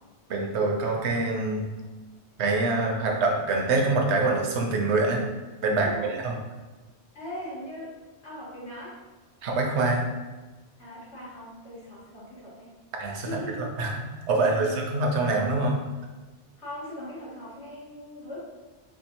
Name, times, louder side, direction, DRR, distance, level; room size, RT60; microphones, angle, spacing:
voice 1, 0.3-1.7 2.4-5.2 5.6-5.9 6.2-6.3 9.4-10.0 13.0-13.3 13.6-13.9 14.3-15.8, right 3 dB, 80° right, 1 dB, 1.0 m, -25 dB
voice 2, 5.8-6.1 7.1-7.9 8.2-9.0 10.8-12.7 13.2-13.7 14.3-14.8 16.6-18.4, equal, 85° left, -9 dB, 1.9 m, -39 dB
4.5 x 2.4 x 2.9 m, 1.2 s
omnidirectional pair, 1.1 m